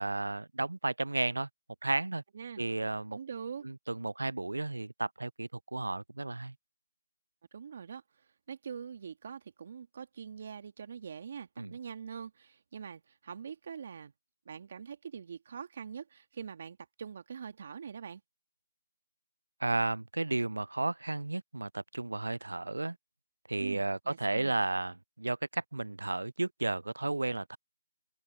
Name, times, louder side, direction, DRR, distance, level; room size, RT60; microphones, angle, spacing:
voice 1, 0.0-1.5 1.8-2.2 2.6-3.2 3.6-6.5 11.6-11.8 19.6-23.0 23.5-27.6, right 2 dB, 85° right, 0.4 m, -33 dB
voice 2, 3.1-3.6 7.5-14.1 14.4-18.2 23.6-24.6, right 7 dB, 40° right, 1.8 m, -44 dB
open air
figure-of-eight pair, 165°, 0 cm